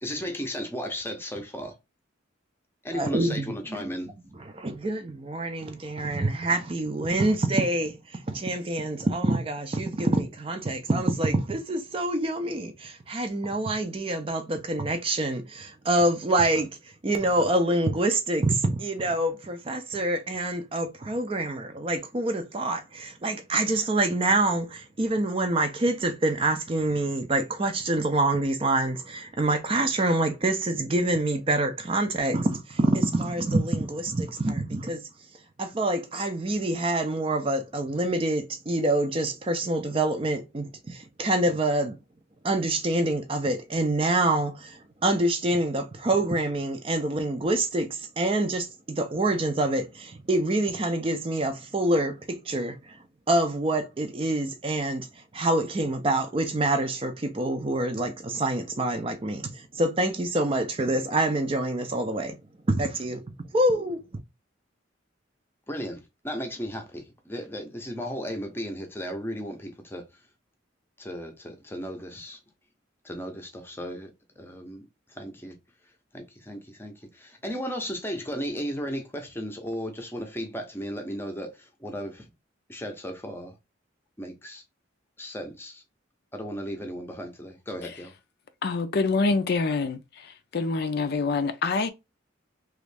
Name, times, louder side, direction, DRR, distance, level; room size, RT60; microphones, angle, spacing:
voice 1, 0.0-1.8 2.8-4.2 65.7-70.1 71.0-72.4 73.0-75.6 76.1-82.3 82.7-83.5 84.2-84.6 85.2-85.8 86.3-88.1, equal, 10° left, 0.6 m, -35 dB
voice 2, 2.9-3.5 4.4-16.7 17.0-35.0 35.6-42.0 42.4-53.0 53.3-62.4 62.7-63.3 63.5-64.0, right 2 dB, 30° right, 0.4 m, -26 dB
voice 3, 88.6-90.3 90.5-91.9, left 4 dB, 55° left, 0.4 m, -26 dB
3.1 x 2.4 x 3.3 m
head